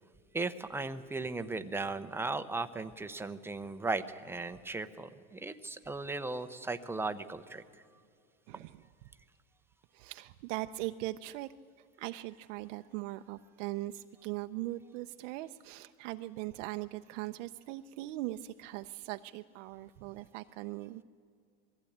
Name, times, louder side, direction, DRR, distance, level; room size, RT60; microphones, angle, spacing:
voice 1, 0.3-7.6, right 3 dB, 5° right, 9 dB, 0.6 m, -37 dB
voice 2, 8.5-8.8 9.9-11.5 12.0-21.0, right 17 dB, 55° right, 8 dB, 0.6 m, -40 dB
21.5 x 15.0 x 8.6 m, 2.3 s
supercardioid pair, 120°, 44 cm